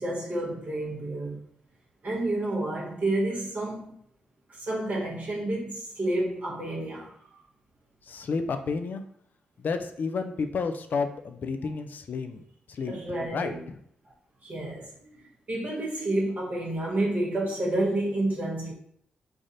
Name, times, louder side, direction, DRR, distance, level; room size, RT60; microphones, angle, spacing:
voice 1, 0.0-1.4 2.0-3.9 4.5-7.4 12.9-13.6 14.4-14.9 15.5-18.7, right 1 dB, 50° right, 1.1 m, -29 dB
voice 2, 8.1-9.0 9.6-12.4 12.7-12.9 13.3-13.8, left 4 dB, 60° left, 0.4 m, -31 dB
3.4 x 2.5 x 3.9 m
supercardioid pair, 40°, 3 cm